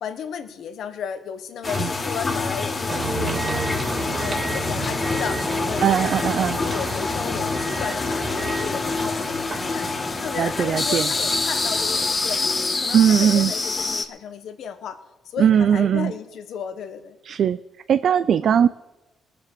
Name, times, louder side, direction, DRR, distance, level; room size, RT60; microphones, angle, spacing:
voice 1, 0.0-3.4 4.2-9.9 10.2-12.4 12.8-15.0 15.2-17.2, left 7 dB, 70° left, 9 dB, 1.4 m, -34 dB
sound 1, 1.6-14.1, left 3 dB, 30° left, 1.5 m, -26 dB
sound 2, 2.9-12.0, right 2 dB, 35° right, 3.0 m, -32 dB
voice 2, 5.8-6.6 10.4-11.1 12.9-13.5 15.4-16.1 17.2-17.6 17.9-18.7, right 8 dB, 60° right, 13 dB, 0.4 m, -19 dB
20.0 x 6.9 x 6.8 m, 1.1 s
cardioid pair, 90°, 0 cm